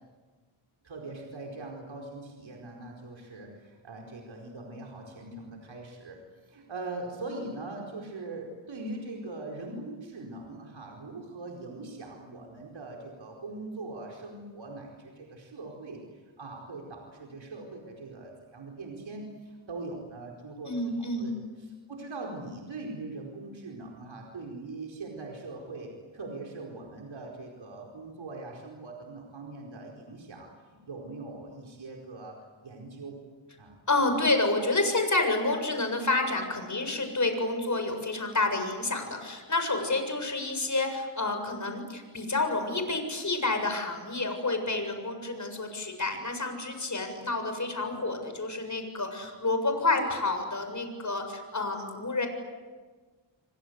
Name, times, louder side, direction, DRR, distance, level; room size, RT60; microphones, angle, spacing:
voice 1, 0.8-32.4 32.6-33.2 33.6-33.7, right 2 dB, 65° right, 0 dB, 4.8 m, -41 dB
voice 2, 20.7-21.4 33.9-52.3, left 2 dB, 35° left, 6 dB, 7.2 m, -29 dB
29.5 x 25.0 x 8.1 m, 1.4 s
cardioid pair, 85°, 49 cm